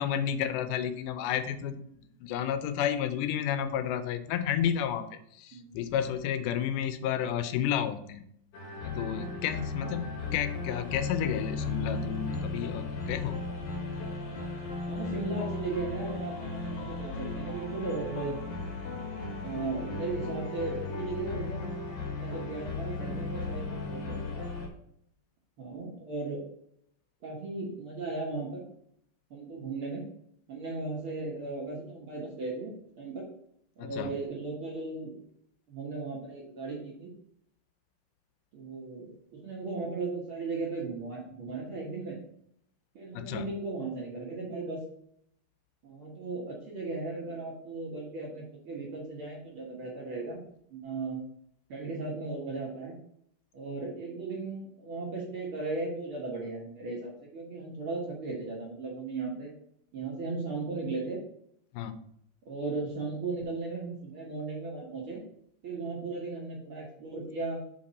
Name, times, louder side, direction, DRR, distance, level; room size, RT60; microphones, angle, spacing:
voice 1, 0.0-1.8 2.2-5.1 5.3-8.2 8.8-13.4 33.8-34.2 43.1-43.5 61.7-62.0, left 9 dB, 85° left, 11 dB, 2.2 m, -31 dB
sound 1, 8.5-24.7, left 3 dB, 55° left, 2.0 m, -36 dB
voice 2, 14.8-18.4 19.4-21.7 22.1-24.6 25.6-26.4 27.2-28.6 29.3-30.0 30.5-33.2 33.8-35.1 35.7-37.1 38.5-42.2 43.0-44.8 45.8-50.4 50.7-51.2 51.7-53.0 53.5-59.5 59.9-61.2 62.5-65.2 65.6-67.6, right 3 dB, 55° right, -3 dB, 1.6 m, -36 dB
5.9 x 4.9 x 4.0 m, 0.69 s
omnidirectional pair, 3.7 m